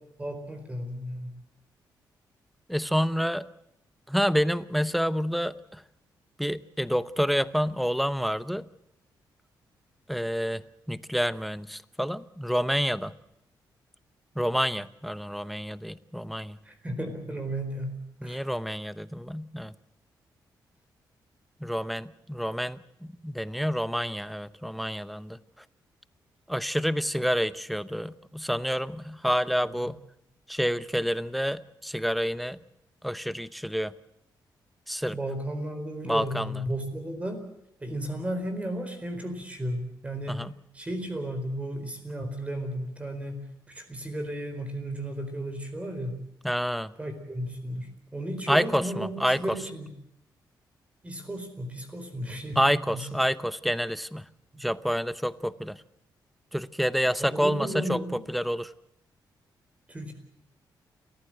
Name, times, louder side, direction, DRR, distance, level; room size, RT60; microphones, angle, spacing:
voice 1, 0.2-1.3 16.6-18.4 29.6-29.8 35.1-37.4 37.8-40.5 40.7-46.2 47.0-49.9 51.0-53.1 54.5-54.6 57.2-58.2 59.9-60.1, right 1 dB, 15° right, 7 dB, 4.5 m, -34 dB
voice 2, 2.7-3.5 4.1-5.8 6.4-8.6 10.1-10.6 10.9-13.1 14.4-16.6 18.2-19.7 21.6-25.4 26.5-30.0 30.5-32.6 33.0-33.9 34.9-35.2 36.0-36.5 40.3-40.5 46.4-46.9 48.5-49.6 52.6-54.2 54.6-55.8 56.5-58.0 58.3-58.7, equal, ahead, 15 dB, 0.8 m, -28 dB
29.0 x 14.5 x 7.8 m, 0.81 s
cardioid pair, 100°, 8 cm